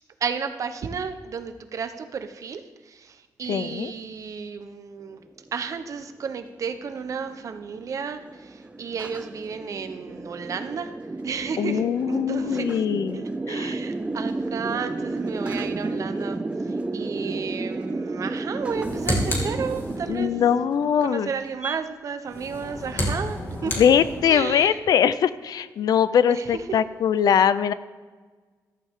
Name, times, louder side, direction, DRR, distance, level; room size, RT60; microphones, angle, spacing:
voice 1, 0.2-5.2 5.5-10.9 11.2-12.8 13.1-20.3 21.0-23.7 24.3-24.8 26.3-26.8, right 6 dB, 55° right, 9 dB, 1.0 m, -33 dB
voice 2, 3.5-3.9 11.6-13.7 20.1-21.3 23.8-27.7, left 8 dB, 75° left, 15 dB, 0.6 m, -22 dB
sound 1, 5.4-21.8, right 2 dB, 15° right, 0.5 m, -32 dB
sound 2, 18.6-20.3 22.2-24.6, equal, 35° left, 3.0 m, -30 dB
14.0 x 14.0 x 3.7 m, 1.4 s
cardioid pair, 125°, 7 cm